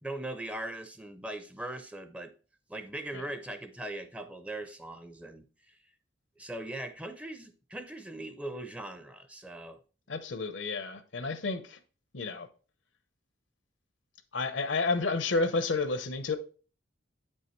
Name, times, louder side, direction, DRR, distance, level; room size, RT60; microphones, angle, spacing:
voice 1, 0.0-2.3 2.7-5.8 6.4-9.8, right 1 dB, 5° right, 0.5 m, -40 dB
voice 2, 10.1-11.8 12.1-12.5 14.3-16.4, left 3 dB, 70° left, 0.7 m, -30 dB
8.4 x 5.5 x 3.0 m
head